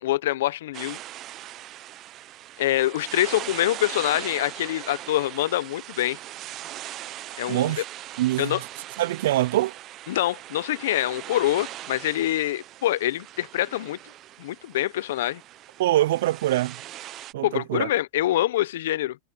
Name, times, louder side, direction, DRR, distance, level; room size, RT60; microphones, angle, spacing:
voice 1, 0.0-1.0 2.6-6.2 7.4-7.8 8.4-8.6 10.1-14.0 14.4-15.4 17.4-19.2, left 14 dB, 80° left, 0.6 m, -25 dB
sound 1, 0.7-17.3, right 14 dB, 35° right, 0.7 m, -40 dB
voice 2, 7.5-7.8 8.2-8.6 9.0-9.7 15.8-16.8 17.3-17.9, right 15 dB, 80° right, 0.3 m, -24 dB
supercardioid pair, 145°, 0 cm